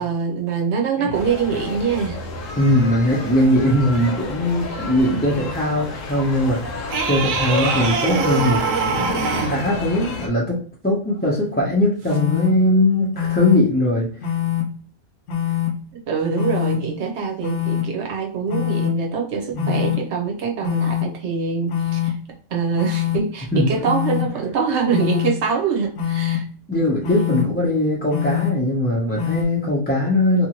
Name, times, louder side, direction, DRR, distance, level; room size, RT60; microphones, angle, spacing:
voice 1, 0.0-2.2 16.1-22.2 22.5-26.5, right 5 dB, 65° right, 2 dB, 1.0 m, -24 dB
sound 1, 1.1-10.3, left 3 dB, 85° left, 1.0 m, -31 dB
voice 2, 2.6-8.6 8.9-10.6 10.8-14.3 19.5-19.9 23.5-23.7 26.7-30.5, left 1 dB, 10° left, -5 dB, 0.6 m, -20 dB
sound 2, 6.9-9.6 12.1-12.2, right 5 dB, 90° right, 1.0 m, -23 dB
sound 3, 12.1-12.5 13.1-13.6 14.2-14.6 15.3-15.7 16.3-16.8 17.4-17.8 18.5-18.9 19.5-20.0 20.6-21.0 21.7-22.1 22.8-23.2 23.8-24.2 24.9-25.3 26.0-26.4 27.0-27.4 28.1-28.5 29.2-29.4, left 11 dB, 70° left, 1.0 m, -23 dB
2.9 x 2.5 x 2.9 m, 0.43 s
omnidirectional pair, 1.3 m